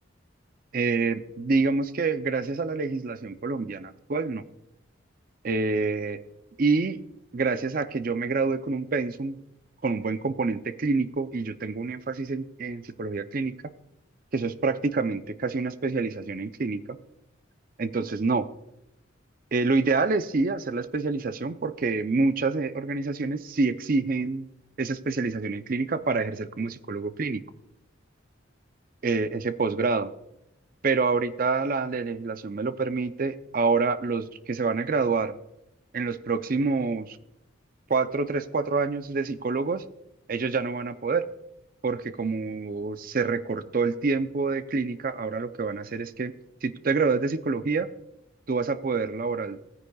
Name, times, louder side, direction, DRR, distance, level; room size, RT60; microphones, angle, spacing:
voice 1, 0.7-4.4 5.4-6.2 6.6-7.0 7.3-9.4 9.8-13.6 14.3-17.0 17.8-18.5 19.5-24.5 24.8-27.4 29.0-30.1 30.8-35.4 35.9-37.2 37.9-39.8 40.3-41.3 41.8-46.3 46.6-47.9 48.5-49.6, right 4 dB, 45° right, 12 dB, 0.5 m, -27 dB
18.5 x 9.5 x 2.3 m, 0.86 s
head